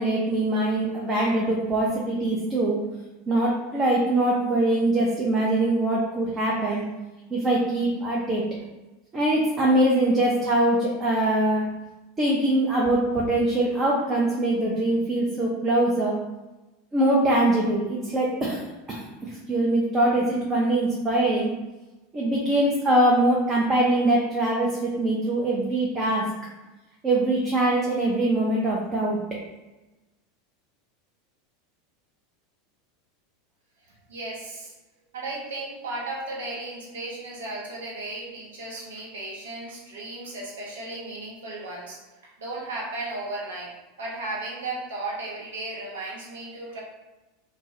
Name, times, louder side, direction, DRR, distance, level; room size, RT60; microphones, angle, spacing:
voice 1, 0.0-2.8 3.3-6.8 7.3-8.4 9.1-11.6 12.2-16.2 16.9-18.6 18.9-21.5 22.1-26.3 27.0-29.2, right 1 dB, 25° right, -3 dB, 0.4 m, -23 dB
voice 2, 34.1-34.7 35.1-43.7 44.0-46.8, right 2 dB, 70° right, -4 dB, 0.7 m, -35 dB
2.2 x 2.1 x 2.7 m, 1.1 s
figure-of-eight pair, 80°, 0 cm